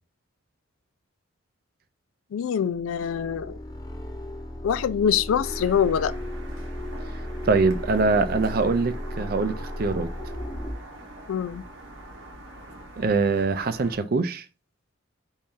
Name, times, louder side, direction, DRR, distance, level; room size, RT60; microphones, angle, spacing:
voice 1, 2.3-3.6 4.6-6.1 11.3-11.6, left 8 dB, 85° left, 0.3 m, -24 dB
sound 1, 2.7-10.7, equal, 20° left, 0.6 m, -35 dB
sound 2, 5.4-14.0, right 1 dB, 70° right, 0.9 m, -43 dB
voice 2, 7.5-10.1 13.0-14.4, right 4 dB, 45° right, 0.4 m, -23 dB
4.3 x 2.7 x 3.6 m
head